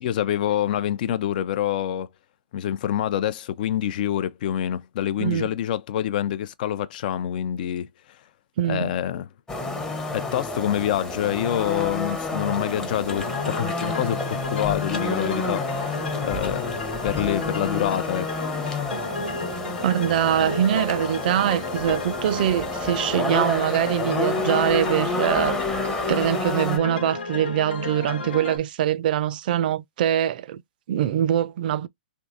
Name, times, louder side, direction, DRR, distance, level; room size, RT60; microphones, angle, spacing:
voice 1, 0.0-2.1 2.5-7.9 8.7-9.3 10.1-16.0 16.2-18.3, left 11 dB, 50° left, 0.5 m, -26 dB
voice 2, 5.2-5.5 8.6-9.0 19.8-25.6 26.1-30.6 30.9-31.9, right 10 dB, 55° right, 0.5 m, -23 dB
sound 1, 9.5-26.8, left 2 dB, 10° left, 0.7 m, -29 dB
sound 2, 13.1-28.6, left 3 dB, 75° left, 1.2 m, -33 dB
3.5 x 2.7 x 2.6 m
hypercardioid pair, 130°, 6 cm